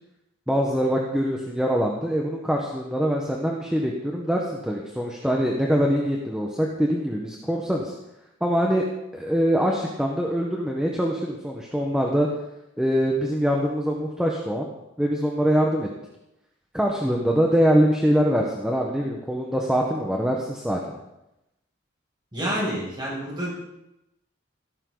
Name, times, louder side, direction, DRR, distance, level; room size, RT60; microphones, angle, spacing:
voice 1, 0.5-7.9 8.4-8.8 9.1-12.3 12.8-14.7 15.0-15.9 16.7-21.0, equal, 5° right, -1 dB, 1.4 m, -23 dB
voice 2, 22.3-23.5, equal, 25° right, -5 dB, 7.0 m, -28 dB
16.0 x 13.5 x 4.1 m, 0.89 s
head